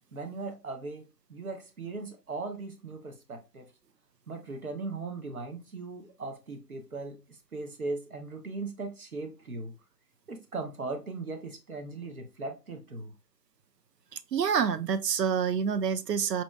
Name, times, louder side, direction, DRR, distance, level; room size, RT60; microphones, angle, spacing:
voice 1, 0.1-3.7 4.3-9.7 10.3-13.1, right 3 dB, 65° right, 0.9 m, -38 dB
voice 2, 14.1-16.4, right 7 dB, 90° right, 0.6 m, -27 dB
4.3 x 2.6 x 2.3 m
figure-of-eight pair, 175°, 47 cm